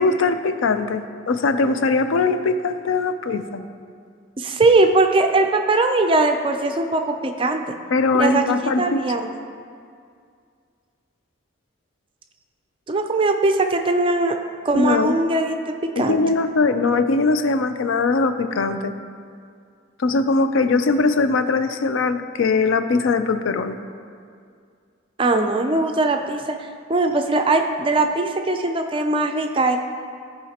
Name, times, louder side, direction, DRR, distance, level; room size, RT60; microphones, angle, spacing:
voice 1, 0.0-3.6 7.9-9.0 14.7-15.2 16.0-18.9 20.0-23.8, left 3 dB, 75° left, 9 dB, 0.4 m, -21 dB
voice 2, 4.4-7.6 8.1-9.3 12.9-14.4 14.6-16.2 25.2-29.8, right 2 dB, 25° right, 5 dB, 0.4 m, -20 dB
14.0 x 4.9 x 2.9 m, 2.2 s
head